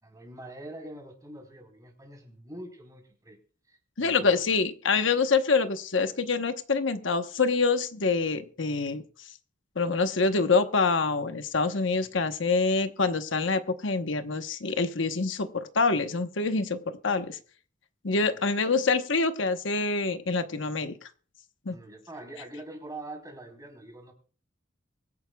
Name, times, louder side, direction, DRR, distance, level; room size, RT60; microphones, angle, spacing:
voice 1, 0.0-3.4 3.7-4.5 12.0-12.1 18.1-18.3 21.7-24.1, right 1 dB, 20° right, 3 dB, 4.1 m, -44 dB
voice 2, 4.0-9.3 9.8-17.4 18.0-21.1 21.6-21.8, left 4 dB, 80° left, 8 dB, 1.0 m, -26 dB
24.0 x 9.7 x 2.3 m, 0.41 s
head